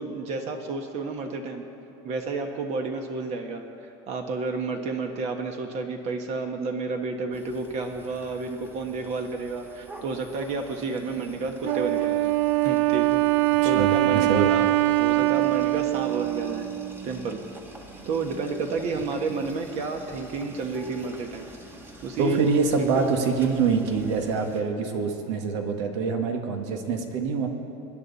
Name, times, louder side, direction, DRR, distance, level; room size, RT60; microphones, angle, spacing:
voice 1, 0.0-1.7 2.0-12.4 12.6-14.7 15.0-16.7 17.0-17.4 18.0-21.5 22.0-22.4 22.8-23.0, right 4 dB, 50° right, 4 dB, 1.3 m, -31 dB
sound 1, 7.3-24.6, right 1 dB, 15° right, 1.4 m, -46 dB
Wind instrument woodwind instrument, 11.6-17.1, right 17 dB, 70° right, 0.4 m, -23 dB
voice 2, 13.6-14.7 22.2-27.5, right 5 dB, 90° right, 4 dB, 1.8 m, -25 dB
24.5 x 10.5 x 4.2 m, 2.9 s
supercardioid pair, 140°, 15 cm